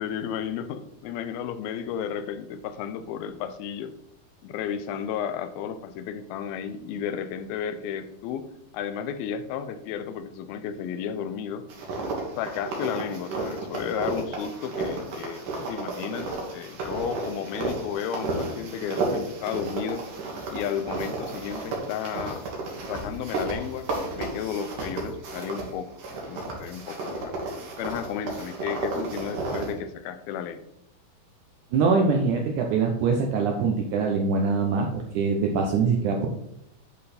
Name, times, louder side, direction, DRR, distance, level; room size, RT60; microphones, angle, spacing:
voice 1, 0.0-3.9 4.4-8.5 8.7-11.7 12.4-20.1 20.5-22.5 22.9-23.9 24.1-25.9 26.3-27.4 27.8-30.6, left 8 dB, 85° left, 11 dB, 2.4 m, -33 dB
sound 1, 11.7-25.7 26.0-29.8, right 3 dB, 65° right, 2.9 m, -33 dB
voice 2, 31.7-36.3, right 4 dB, 80° right, 1 dB, 1.8 m, -23 dB
11.0 x 4.0 x 4.2 m, 0.78 s
omnidirectional pair, 4.3 m